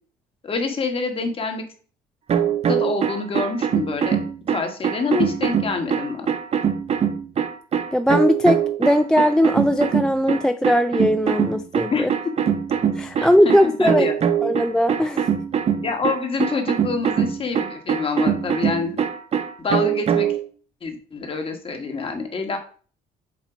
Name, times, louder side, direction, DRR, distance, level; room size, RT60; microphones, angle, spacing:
voice 1, 0.4-1.6 2.4-6.3 11.9-12.1 13.2-14.1 15.8-19.0 19.6-20.3 20.8-22.6, left 4 dB, 35° left, 5 dB, 1.4 m, -26 dB
sound 1, 2.3-20.4, right 8 dB, 40° right, 0.6 m, -23 dB
voice 2, 7.9-12.1 13.0-14.1 14.4-15.3, equal, 5° left, 8 dB, 0.3 m, -19 dB
7.4 x 2.8 x 4.9 m, 0.42 s
cardioid pair, 110°, 17 cm